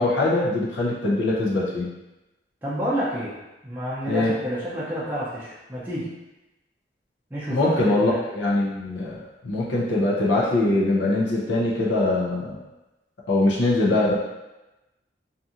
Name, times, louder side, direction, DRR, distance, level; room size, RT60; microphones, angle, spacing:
voice 1, 0.0-1.9 4.1-4.3 7.5-12.6 13.3-14.1, left 2 dB, 80° left, -5 dB, 0.5 m, -22 dB
voice 2, 2.6-3.4 3.6-6.1 7.3-8.2, equal, 10° right, -10 dB, 0.4 m, -29 dB
2.7 x 2.5 x 2.4 m, 1.0 s
head